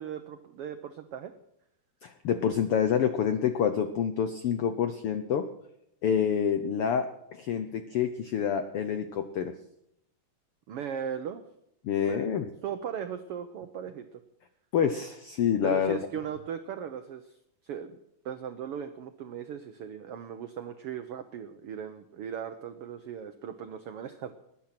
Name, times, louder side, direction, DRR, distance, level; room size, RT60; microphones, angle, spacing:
voice 1, 0.0-1.3 10.7-11.4 12.0-14.2 15.6-17.4 17.6-18.0 18.2-24.3, right 8 dB, 85° right, 8 dB, 1.2 m, -38 dB
voice 2, 2.0-5.5 6.0-9.5 11.8-12.5 14.7-16.0, left 8 dB, 75° left, 9 dB, 1.3 m, -27 dB
20.0 x 10.0 x 5.9 m, 0.80 s
omnidirectional pair, 3.7 m